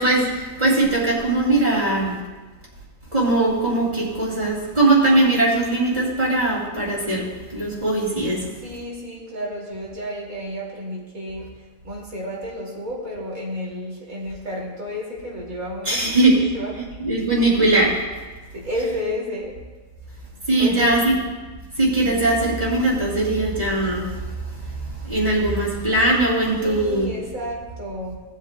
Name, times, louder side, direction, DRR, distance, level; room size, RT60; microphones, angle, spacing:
voice 1, 0.0-2.2 3.1-8.4 15.9-16.4 17.0-17.9 20.5-21.1 21.8-24.2 24.7-27.1, right 2 dB, 30° right, -4 dB, 2.7 m, -20 dB
voice 2, 8.6-11.5 11.8-16.9 18.5-19.6 20.5-21.0 26.6-28.1, equal, 75° right, -4 dB, 2.8 m, -31 dB
17.5 x 8.2 x 2.2 m, 1.3 s
omnidirectional pair, 1.5 m